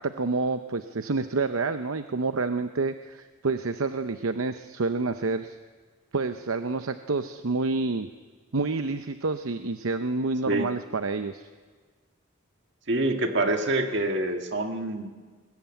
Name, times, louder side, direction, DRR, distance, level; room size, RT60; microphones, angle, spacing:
voice 1, 0.0-5.6 6.1-8.1 8.5-11.5, right 3 dB, 80° right, 9 dB, 0.8 m, -28 dB
voice 2, 12.9-15.1, right 2 dB, 55° right, 4 dB, 1.9 m, -26 dB
21.5 x 20.5 x 9.0 m, 1.5 s
head